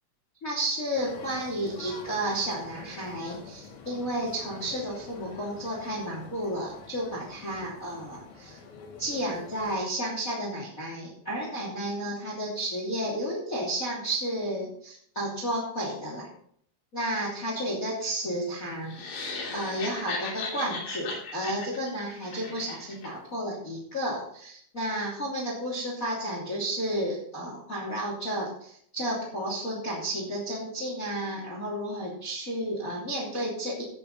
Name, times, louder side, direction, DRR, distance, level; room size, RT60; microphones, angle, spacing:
voice 1, 0.4-8.6 9.0-16.3 16.9-19.0 19.5-33.8, right 1 dB, 20° left, -3 dB, 2.4 m, -32 dB
sound 1, 0.9-9.7, left 5 dB, 90° left, 5.4 m, -47 dB
sound 2, 18.9-23.1, left 3 dB, 65° left, 5.0 m, -37 dB
13.5 x 9.3 x 4.1 m, 0.65 s
omnidirectional pair, 5.7 m